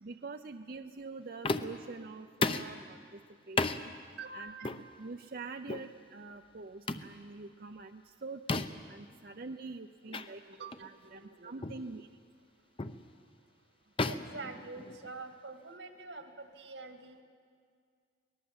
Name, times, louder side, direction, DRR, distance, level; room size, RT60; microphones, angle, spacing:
voice 1, 0.0-3.2 3.5-3.9 4.3-12.1, right 3 dB, 55° right, 7 dB, 0.6 m, -45 dB
sound 1, 1.4-1.9 2.4-2.8 3.6-3.8 4.6-4.8 5.7-5.9 6.9-7.1 8.5-8.9 10.1-10.3 10.7-10.9 11.6-11.9 12.8-13.0 14.0-15.2, left 3 dB, 30° left, 0.7 m, -33 dB
voice 2, 4.2-4.8 10.1-11.9 14.1-17.2, right 3 dB, 85° right, 6 dB, 2.1 m, -47 dB
23.5 x 19.0 x 8.0 m, 2.2 s
head